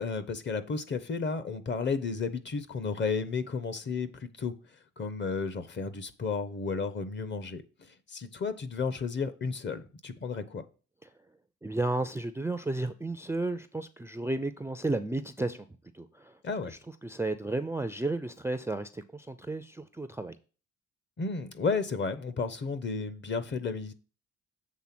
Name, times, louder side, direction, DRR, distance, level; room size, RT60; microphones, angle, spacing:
voice 1, 0.0-4.5 5.0-7.6 8.1-10.6 16.4-16.7 21.2-23.9, left 4 dB, 40° left, 0.8 m, -32 dB
voice 2, 11.6-15.7 15.9-16.4 16.7-20.4, right 2 dB, 10° right, 0.4 m, -33 dB
7.4 x 3.4 x 5.9 m
cardioid pair, 90°, 30 cm